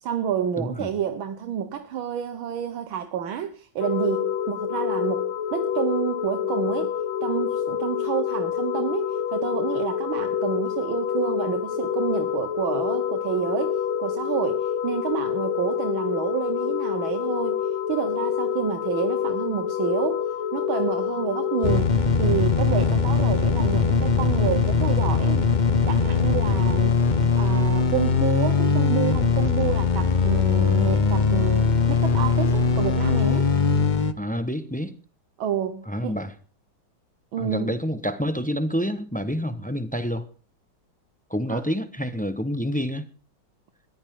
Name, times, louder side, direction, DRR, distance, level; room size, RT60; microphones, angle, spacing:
voice 1, 0.0-6.9 7.2-17.6 17.9-25.5 25.9-33.5 35.4-36.2 37.3-37.7 41.5-41.6, right 9 dB, 80° right, 1.9 m, -29 dB
voice 2, 0.6-0.9 34.2-34.9 35.9-36.3 37.4-40.3 41.3-43.1, equal, 5° left, 0.8 m, -28 dB
sound 1, 3.8-21.8, left 9 dB, 85° left, 1.8 m, -27 dB
sound 2, 21.6-34.1, left 5 dB, 45° left, 0.5 m, -21 dB
20.5 x 14.0 x 3.8 m
omnidirectional pair, 2.2 m